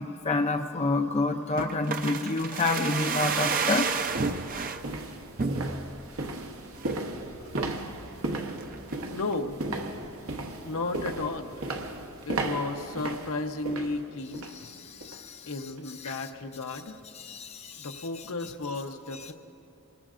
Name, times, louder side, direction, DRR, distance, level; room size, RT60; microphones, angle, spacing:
voice 1, 0.0-3.9 14.6-15.5 16.0-16.2 17.1-18.1, left 3 dB, 30° left, 5 dB, 0.5 m, -29 dB
sound 1, 1.6-4.8 5.4-6.0 6.4-6.5 6.8-7.1 7.6-7.9 8.3-9.0 9.3-9.4, right 5 dB, 40° right, 0.6 m, -30 dB
sound 2, 3.5-14.6 15.0-15.3 15.7-15.8, right 2 dB, 80° right, 1.2 m, -36 dB
voice 2, 9.1-9.6 10.6-11.7 12.3-14.5 15.5-17.0 17.8-19.3, left 3 dB, 75° left, 5 dB, 0.9 m, -33 dB
24.5 x 21.0 x 2.5 m, 2.5 s
head